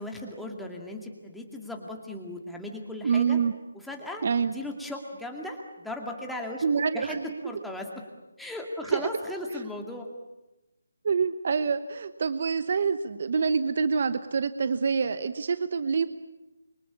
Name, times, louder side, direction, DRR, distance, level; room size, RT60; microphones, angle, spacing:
voice 1, 0.0-3.4 3.7-7.2 7.4-8.0 8.4-10.1, left 1 dB, ahead, 1 dB, 2.2 m, -37 dB
voice 2, 3.0-3.5 4.2-4.5 6.6-7.4 8.9-9.1 11.0-16.1, right 5 dB, 45° right, 12 dB, 1.0 m, -26 dB
28.0 x 24.0 x 8.6 m, 1.0 s
hypercardioid pair, 170°, 0 cm